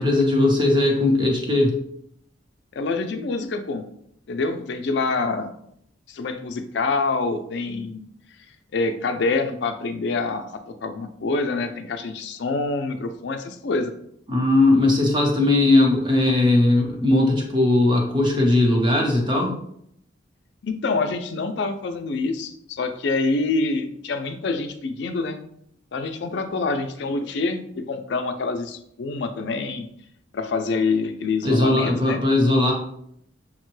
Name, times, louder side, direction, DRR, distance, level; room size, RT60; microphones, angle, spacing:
voice 1, 0.0-1.7 14.3-19.5 31.4-32.7, left 2 dB, 25° right, 0 dB, 0.8 m, -19 dB
voice 2, 2.7-3.8 4.3-5.5 6.1-8.0 8.7-10.5 10.8-13.9 20.6-25.4 25.9-29.9 30.3-32.2, left 3 dB, 60° left, 7 dB, 0.4 m, -26 dB
5.8 x 2.1 x 3.1 m, 0.71 s
head